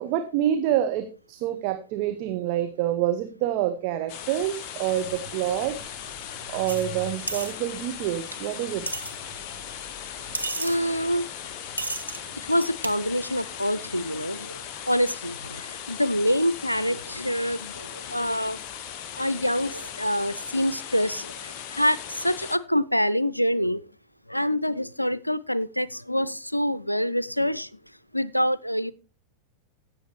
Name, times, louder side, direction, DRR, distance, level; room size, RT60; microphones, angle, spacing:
voice 1, 0.0-5.8 6.5-8.9, right 11 dB, 45° right, 7 dB, 0.9 m, -27 dB
sound 1, 4.1-22.6, left 9 dB, 40° left, 0.8 m, -38 dB
Truck, 4.9-13.6, right 5 dB, 5° right, 6.4 m, -48 dB
sound 2, 6.7-6.8 7.3-7.5 8.3-8.4 8.9-9.1 10.3-10.8 11.8-12.2 12.8-12.9, right 2 dB, 85° right, 0.9 m, -31 dB
voice 2, 10.6-11.3 12.5-14.6 14.9-18.6 19.2-23.9 24.3-27.7 28.1-28.9, equal, 90° left, 19 dB, 0.4 m, -26 dB
16.5 x 6.9 x 3.1 m, 0.34 s
figure-of-eight pair, 90°, 0 cm